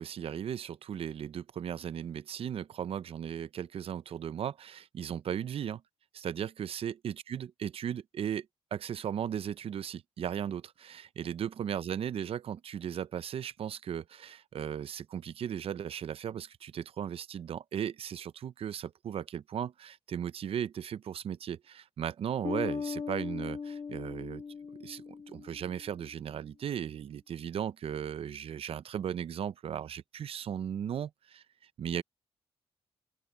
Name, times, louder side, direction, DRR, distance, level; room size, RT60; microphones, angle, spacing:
voice 1, 0.0-5.8 6.1-8.5 8.7-24.4 24.8-31.4 31.8-32.0, right 9 dB, 65° right, 0.6 m, -36 dB
Bass guitar, 22.4-26.0, left 5 dB, 45° left, 1.5 m, -38 dB
open air
cardioid pair, 80°, 11 cm